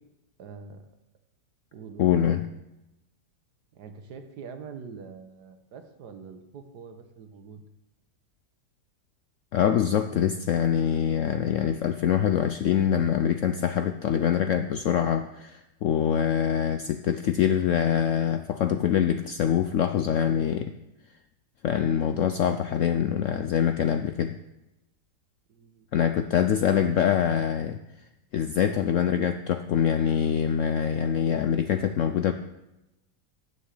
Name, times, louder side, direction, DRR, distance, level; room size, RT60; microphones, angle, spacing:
voice 1, 0.4-0.8 1.7-2.1 3.7-7.6 25.5-26.3, right 5 dB, 75° right, 7 dB, 1.6 m, -44 dB
voice 2, 2.0-2.5 9.5-20.7 21.6-24.3 25.9-27.8 28.3-32.3, left 9 dB, 75° left, 8 dB, 0.7 m, -24 dB
9.9 x 6.3 x 7.5 m, 0.95 s
omnidirectional pair, 1.8 m